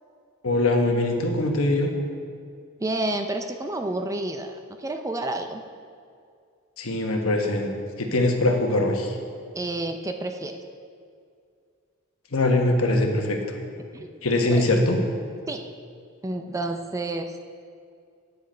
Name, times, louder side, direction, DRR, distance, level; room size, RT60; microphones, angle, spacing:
voice 1, 0.4-1.9 6.8-7.7 8.0-9.1 12.3-13.4 14.2-15.0, left 2 dB, 70° left, 2 dB, 1.1 m, -22 dB
voice 2, 2.8-4.5 4.8-5.6 9.6-10.6 13.9-14.1 14.5-14.7 15.5-15.6 16.2-17.3, right 2 dB, 15° right, 6 dB, 0.4 m, -29 dB
9.4 x 7.5 x 4.4 m, 2.3 s
head